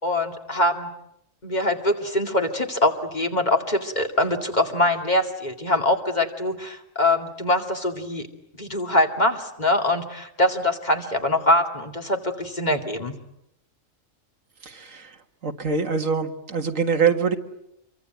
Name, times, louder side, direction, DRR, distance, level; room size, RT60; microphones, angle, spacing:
voice 1, 0.0-0.9 1.4-8.3 8.6-13.1, left 1 dB, 35° left, 4 dB, 2.6 m, -23 dB
voice 2, 14.6-15.2 15.4-17.4, right 5 dB, 80° right, 6 dB, 2.2 m, -24 dB
26.5 x 23.5 x 9.2 m, 0.79 s
omnidirectional pair, 1.3 m